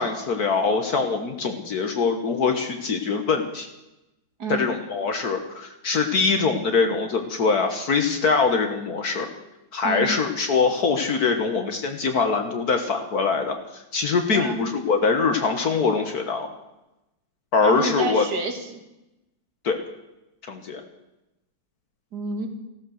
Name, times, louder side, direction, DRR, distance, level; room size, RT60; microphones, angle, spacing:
voice 1, 0.0-3.7 4.5-9.3 9.7-16.5 17.5-18.3 19.6-19.8 20.5-20.8, left 4 dB, 60° left, 5 dB, 1.7 m, -23 dB
voice 2, 4.4-4.7 9.8-10.1 14.3-14.6 17.6-18.8 22.1-22.5, right 3 dB, 65° right, 6 dB, 2.4 m, -29 dB
15.0 x 12.5 x 6.4 m, 0.94 s
omnidirectional pair, 1.9 m